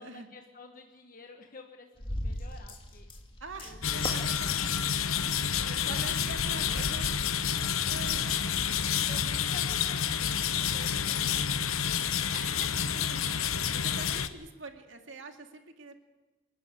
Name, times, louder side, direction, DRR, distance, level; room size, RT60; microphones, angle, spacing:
voice 1, 0.0-3.1 3.6-4.5 4.9-6.8 9.0-11.8, left 3 dB, 40° left, 3 dB, 1.4 m, -50 dB
sound 1, 2.0-9.2, left 1 dB, 25° left, 2.0 m, -41 dB
voice 2, 3.4-5.1 5.9-7.1 7.9-8.4 12.3-16.0, right 3 dB, 65° right, 5 dB, 2.2 m, -45 dB
sound 2, 3.8-14.3, left 8 dB, 85° left, 1.0 m, -29 dB
26.5 x 12.0 x 9.7 m, 1.2 s
head